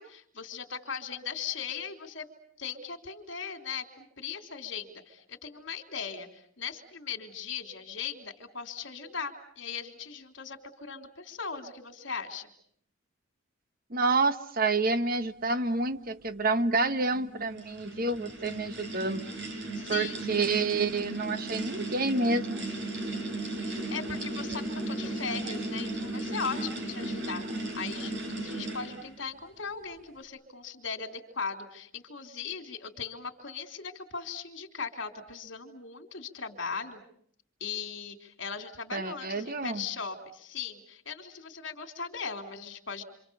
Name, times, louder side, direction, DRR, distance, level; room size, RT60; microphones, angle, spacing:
voice 1, 0.0-2.3 2.6-12.5 19.7-20.3 23.6-37.0 37.6-43.0, left 6 dB, 65° left, 7 dB, 3.4 m, -38 dB
voice 2, 13.9-19.2 19.9-22.7 38.9-39.8, right 3 dB, 45° right, 11 dB, 1.3 m, -28 dB
sound 1, 17.0-29.2, right 2 dB, 60° right, 6.2 m, -36 dB
28.0 x 27.0 x 7.0 m, 0.65 s
head